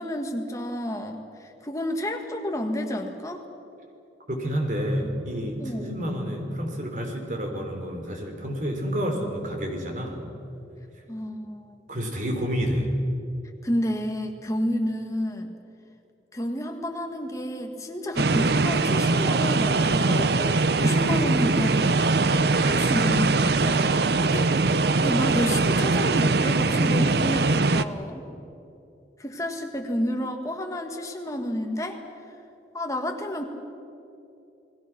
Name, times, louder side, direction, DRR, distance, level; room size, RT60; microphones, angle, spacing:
voice 1, 0.0-3.4 5.6-5.9 11.1-11.8 13.6-15.6 16.3-22.2 22.5-24.5 25.0-28.3 29.2-32.0 32.7-33.4, equal, 20° left, 3 dB, 1.8 m, -30 dB
voice 2, 4.3-10.2 11.9-12.9, equal, 45° right, 3 dB, 3.7 m, -29 dB
sound 1, 18.2-27.8, right 3 dB, 65° right, 0.7 m, -22 dB
29.0 x 20.0 x 6.1 m, 2.7 s
head